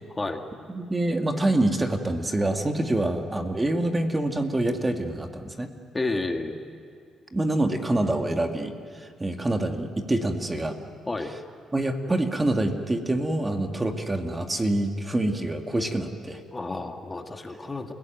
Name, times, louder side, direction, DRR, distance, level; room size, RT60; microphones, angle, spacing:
voice 1, 0.7-5.7 7.3-10.7 11.7-16.4, right 1 dB, 20° right, 4 dB, 2.1 m, -26 dB
voice 2, 5.9-6.6 11.1-11.3 16.5-17.9, left 2 dB, 20° left, 4 dB, 2.0 m, -30 dB
29.5 x 17.0 x 9.2 m, 2.5 s
cardioid pair, 90°, 0 cm